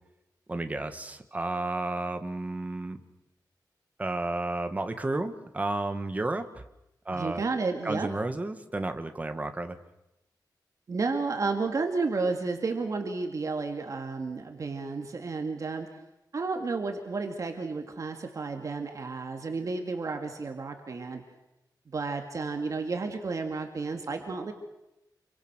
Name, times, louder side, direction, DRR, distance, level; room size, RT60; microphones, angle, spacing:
voice 1, 0.5-3.0 4.0-6.6 7.0-7.4 7.8-9.8, right 2 dB, 20° right, 7 dB, 1.7 m, -32 dB
voice 2, 7.1-8.1 10.9-15.9 16.3-21.2 21.9-24.5, right 4 dB, 45° right, 4 dB, 2.3 m, -32 dB
28.0 x 25.0 x 6.3 m, 0.90 s
wide cardioid pair, 180°, 7 cm